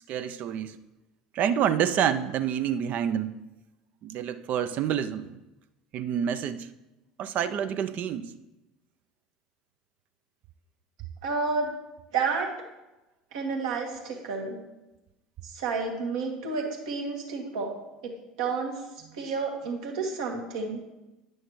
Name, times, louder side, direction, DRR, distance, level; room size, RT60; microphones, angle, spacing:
voice 1, 0.1-0.8 1.3-3.4 4.0-5.4 5.9-6.7 7.2-8.3 19.1-19.2, right 9 dB, 50° right, 10 dB, 0.4 m, -28 dB
voice 2, 11.2-11.7 12.1-12.5 13.3-14.6 15.5-17.7 18.0-18.1 18.4-18.8 19.1-20.8, right 4 dB, 70° right, 1 dB, 1.4 m, -30 dB
9.8 x 6.3 x 3.1 m, 0.99 s
hypercardioid pair, 75°, 3 cm